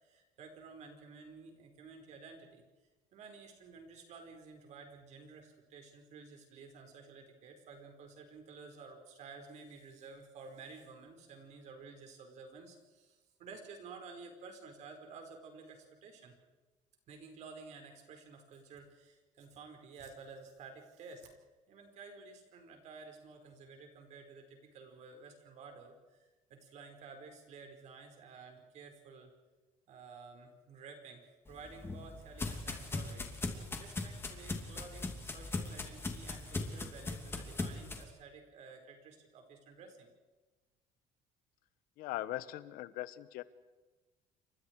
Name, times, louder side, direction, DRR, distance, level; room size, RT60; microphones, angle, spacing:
voice 1, 0.0-2.6 3.1-16.3 17.1-21.3 21.7-29.3 29.9-33.3 33.8-40.1, right 4 dB, 55° right, 4 dB, 5.1 m, -52 dB
sound 1, 31.5-38.0, left 3 dB, 15° left, 2.7 m, -40 dB
voice 2, 42.0-43.4, left 15 dB, 80° left, 15 dB, 1.2 m, -40 dB
29.5 x 25.0 x 4.8 m, 1.2 s
cardioid pair, 155°, 15 cm